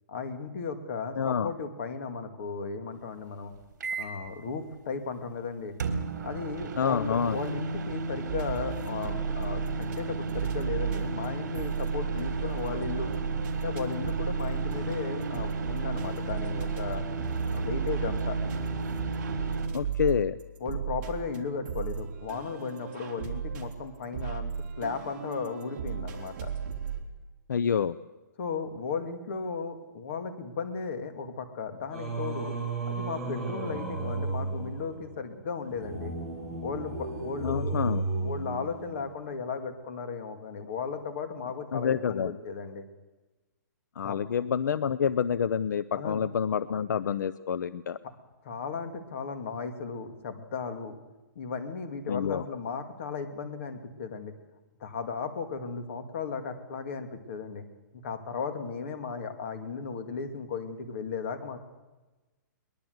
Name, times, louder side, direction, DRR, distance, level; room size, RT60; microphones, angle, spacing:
voice 1, 0.1-3.5 4.0-5.7 6.2-13.1 13.6-17.1 17.5-18.4 20.6-24.5 24.8-26.5 28.4-32.6 32.9-36.1 36.6-37.8 38.2-42.9 44.0-44.2 45.9-46.2 48.4-51.0 51.4-54.3 54.8-57.6 57.9-61.6, left 5 dB, 40° left, 8 dB, 2.3 m, -35 dB
voice 2, 1.2-1.5 6.8-7.4 19.7-20.4 27.5-27.9 37.4-38.0 41.7-42.4 44.0-48.0 52.1-52.4, left 7 dB, 70° left, 16 dB, 0.7 m, -28 dB
sound 1, 3.8-4.3 5.8-19.7, right 3 dB, 60° right, 3.8 m, -34 dB
sound 2, 8.3-10.0 10.3-27.0, right 7 dB, 40° right, 3.2 m, -35 dB
Singing, 31.9-39.3, right 3 dB, 5° left, 3.2 m, -34 dB
22.0 x 20.5 x 8.0 m, 1.2 s
hypercardioid pair, 175°, 10 cm